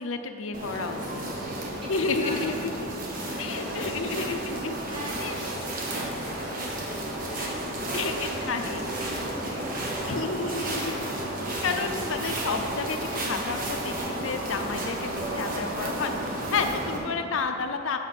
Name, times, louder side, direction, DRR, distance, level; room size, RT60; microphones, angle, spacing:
voice 1, 0.0-1.0 1.9-2.7 3.4-4.7 5.2-5.4 7.9-8.8 10.1-11.1 11.6-18.0, left 4 dB, 80° left, 6 dB, 0.6 m, -31 dB
sound 1, 0.5-17.0, right 1 dB, 45° right, 1.2 m, -32 dB
voice 2, 1.0-2.6 3.1-3.9 4.1-4.5 4.9-7.0 7.4-11.5, right 1 dB, 25° right, -3 dB, 1.4 m, -45 dB
8.4 x 5.4 x 5.9 m, 2.5 s
head